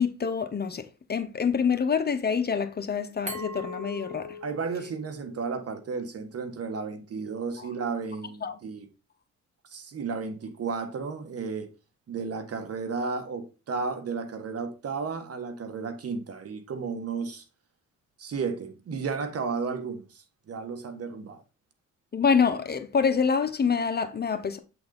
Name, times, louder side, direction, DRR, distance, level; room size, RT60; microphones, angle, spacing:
voice 1, 0.0-4.4 8.4-8.6 22.1-24.6, left 6 dB, 35° left, 0.9 m, -26 dB
Glass, 3.3-6.0, left 2 dB, 20° right, 2.4 m, -40 dB
voice 2, 4.4-8.9 9.7-11.7 12.1-17.4 18.2-21.4, right 5 dB, 50° right, 1.3 m, -33 dB
7.9 x 4.0 x 3.9 m
cardioid pair, 90°, 30 cm